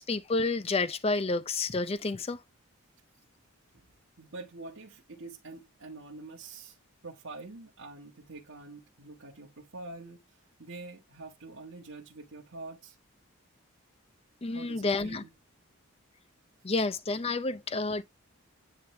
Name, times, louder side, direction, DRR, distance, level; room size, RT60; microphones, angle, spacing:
voice 1, 0.0-2.4 14.4-15.2 16.6-18.0, left 3 dB, 30° left, 0.5 m, -30 dB
voice 2, 4.2-6.8 7.0-13.0 14.5-15.3, right 3 dB, 70° right, 1.4 m, -46 dB
9.5 x 3.3 x 3.3 m
head